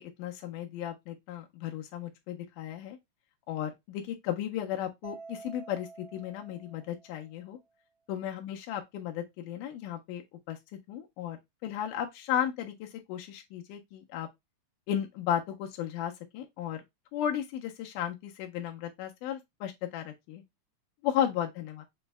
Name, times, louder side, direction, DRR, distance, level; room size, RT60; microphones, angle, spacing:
voice 1, 0.0-3.0 3.5-7.6 8.1-10.2 10.5-10.6 10.9-14.3 14.9-16.8 17.1-20.4 21.0-21.8, left 10 dB, 90° left, 2.2 m, -34 dB
Mallet percussion, 5.0-7.5, right 4 dB, 85° right, 1.3 m, -49 dB
6.1 x 2.0 x 3.2 m
omnidirectional pair, 3.6 m